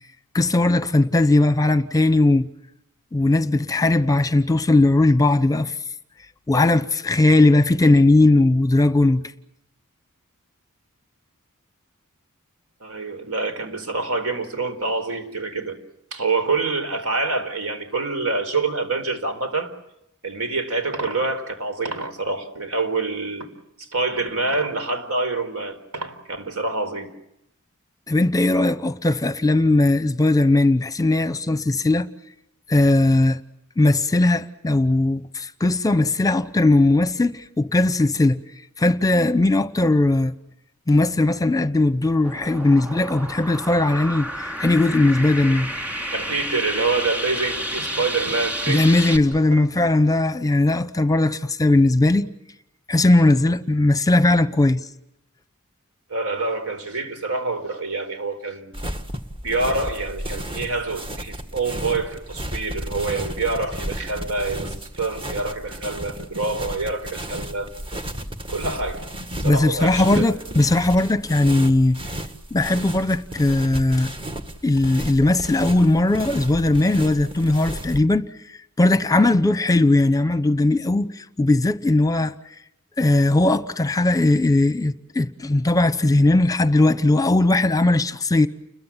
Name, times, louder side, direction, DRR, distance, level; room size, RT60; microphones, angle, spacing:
voice 1, 0.3-2.5 3.1-5.7 6.5-9.3 28.1-32.1 32.7-33.4 33.8-38.4 38.8-40.3 40.9-45.7 48.7-52.3 52.9-54.8 69.4-72.0 72.5-74.1 74.6-78.3 78.8-82.3 83.0-88.5, left 2 dB, 15° left, 0.9 m, -18 dB
voice 2, 12.8-15.8 16.1-19.7 20.2-23.5 23.8-27.1 46.1-48.9 49.5-49.6 56.1-58.7 59.4-68.0 68.5-69.1 69.4-70.3, right 3 dB, 75° right, 4.4 m, -26 dB
sound 1, 42.2-49.2, equal, 5° right, 2.7 m, -30 dB
sound 2, 58.7-78.0, equal, 25° right, 1.8 m, -33 dB
30.0 x 22.0 x 7.4 m
head